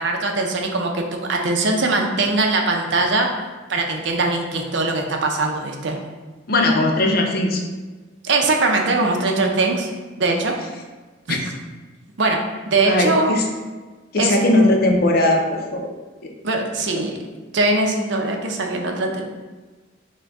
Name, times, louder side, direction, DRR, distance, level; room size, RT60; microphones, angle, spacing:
voice 1, 0.0-3.3 3.7-6.0 8.2-9.9 10.2-10.5 11.3-11.4 12.2-12.4 12.7-13.4 14.2-14.3 16.4-17.2 17.5-19.3, right 2 dB, 70° right, 2 dB, 0.6 m, -21 dB
voice 2, 6.5-7.6 11.3-11.4 12.9-13.5 14.1-15.9 16.9-17.0, left 1 dB, 55° left, 2 dB, 0.6 m, -18 dB
6.1 x 2.2 x 3.5 m, 1.3 s
head